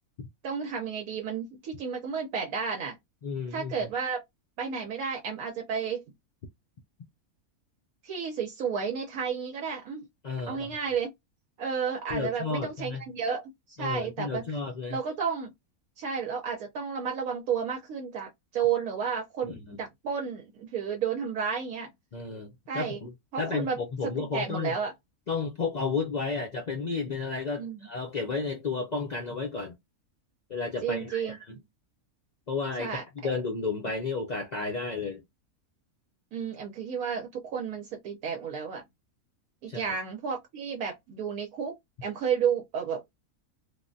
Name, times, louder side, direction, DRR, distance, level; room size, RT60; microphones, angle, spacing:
voice 1, 0.4-3.0 3.5-4.2 4.6-6.0 8.0-10.1 10.5-11.1 11.6-14.4 14.9-15.5 16.0-21.9 22.7-23.0 23.3-23.8 24.2-24.9 27.6-27.8 30.8-31.4 32.8-33.3 36.3-38.8 39.6-41.7 42.0-43.0, right 6 dB, 75° right, 1.1 m, -32 dB
voice 2, 3.2-3.7 10.2-10.8 12.1-13.0 13.8-15.0 19.5-19.8 22.1-23.1 23.4-24.7 25.3-29.7 30.5-31.6 32.5-35.2 39.7-40.0, left 4 dB, 80° left, 0.3 m, -32 dB
3.3 x 2.1 x 2.5 m
omnidirectional pair, 1.5 m